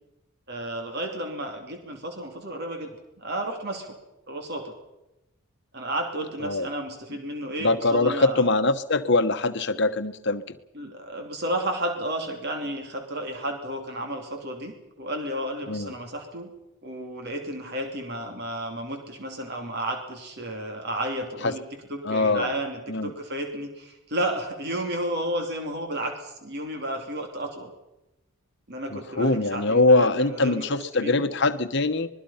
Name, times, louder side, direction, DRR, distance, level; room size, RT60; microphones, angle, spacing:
voice 1, 0.5-2.9 3.2-4.0 4.3-4.8 5.7-8.5 10.7-16.5 16.8-21.6 21.9-27.7 28.7-31.3, right 1 dB, 50° right, 4 dB, 3.0 m, -32 dB
voice 2, 7.6-10.4 15.7-15.9 21.4-21.6 22.0-22.5 22.9-23.1 28.9-32.1, left 2 dB, 55° left, 10 dB, 1.1 m, -23 dB
26.0 x 21.0 x 5.7 m, 0.94 s
head